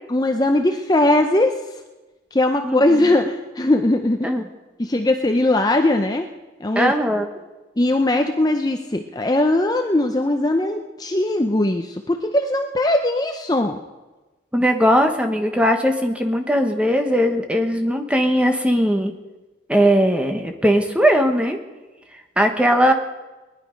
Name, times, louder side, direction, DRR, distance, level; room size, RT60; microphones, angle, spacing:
voice 1, 0.1-1.5 2.3-4.3 4.8-6.3 6.6-6.9 7.8-13.8, left 1 dB, 20° left, 5 dB, 0.6 m, -20 dB
voice 2, 2.6-3.1 4.2-4.5 6.7-7.3 14.5-19.1 19.7-21.6 22.4-22.9, equal, 5° right, 5 dB, 1.1 m, -19 dB
20.0 x 11.0 x 5.2 m, 1.2 s
head